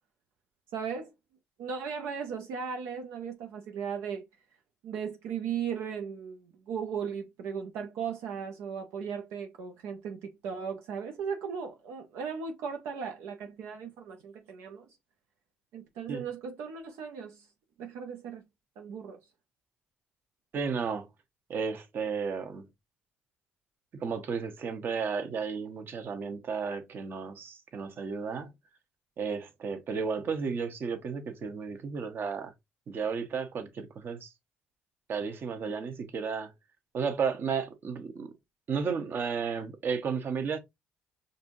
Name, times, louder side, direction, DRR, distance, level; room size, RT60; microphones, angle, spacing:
voice 1, 0.7-1.1 1.6-4.2 4.8-14.9 15.7-17.5 17.8-18.4 18.8-19.2, right 6 dB, 80° right, 0.6 m, -37 dB
voice 2, 20.5-21.1 21.5-22.7 23.9-28.5 29.2-32.5 32.9-34.3 35.1-36.5 36.9-38.3 38.7-40.6, right 5 dB, 55° right, 0.9 m, -33 dB
5.4 x 2.6 x 2.6 m
supercardioid pair, 65°, 4 cm